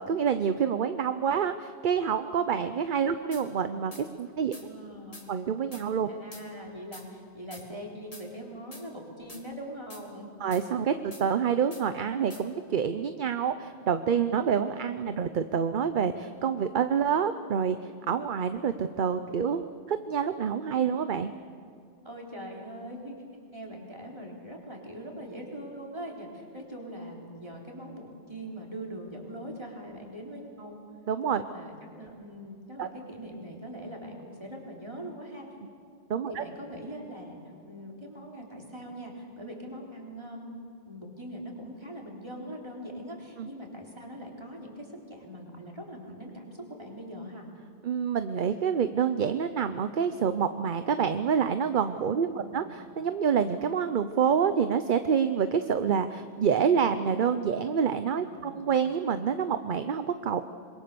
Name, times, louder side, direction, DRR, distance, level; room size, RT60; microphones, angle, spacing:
voice 1, 0.0-4.5 5.3-6.1 10.4-17.8 18.1-21.3 31.1-31.4 32.8-32.9 36.1-36.4 43.4-43.5 47.8-60.4, right 7 dB, 50° right, 10 dB, 0.8 m, -27 dB
sound 1, 3.3-3.5 3.9-4.0 4.5-4.7 5.1-5.3 5.7-5.9 6.3-6.4 6.9-7.1 7.5-7.6 8.1-8.3 8.7-8.8 9.3-9.4 9.9-10.0 10.5-10.6 11.1-11.2 11.7-11.8 12.3-12.4, left 2 dB, 35° left, 2.5 m, -46 dB
voice 2, 4.5-5.3 6.0-10.3 22.0-23.1 23.5-30.8 31.5-35.4 36.3-47.5 52.2-52.8 58.2-58.6, equal, 25° right, -1 dB, 3.9 m, -42 dB
26.5 x 22.0 x 6.9 m, 2.3 s
omnidirectional pair, 1.1 m